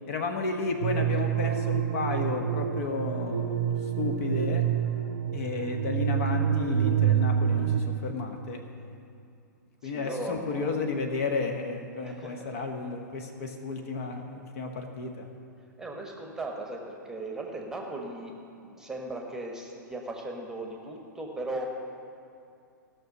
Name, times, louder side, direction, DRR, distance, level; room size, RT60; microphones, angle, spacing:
voice 1, 0.1-4.6 5.3-8.6 9.8-15.3, left 3 dB, 45° left, 4 dB, 1.2 m, -32 dB
sound 1, 0.8-7.8, right 9 dB, 65° right, 0.7 m, -27 dB
voice 2, 9.8-10.8 12.0-12.5 15.8-18.3 18.6-21.7, right 2 dB, 5° right, 0 dB, 1.3 m, -37 dB
16.0 x 6.2 x 6.6 m, 2.5 s
figure-of-eight pair, 110°, 11 cm